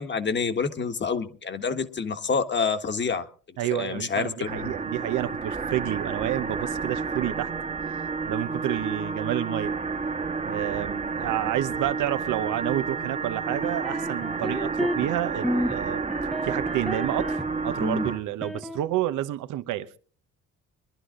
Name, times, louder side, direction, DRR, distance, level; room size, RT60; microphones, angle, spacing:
voice 1, 0.0-3.3 3.7-4.8, left 5 dB, 35° left, 1.5 m, -27 dB
voice 2, 3.6-7.5 7.9-9.7 10.4-16.0 16.4-20.0, right 13 dB, 90° right, 1.0 m, -29 dB
sound 1, 4.5-18.2, right 4 dB, 25° right, 1.2 m, -30 dB
sound 2, 13.6-15.1 15.4-15.8 16.1-17.5 17.8-18.8, equal, ahead, 0.8 m, -30 dB
23.5 x 11.5 x 3.8 m
cardioid pair, 90°, 30 cm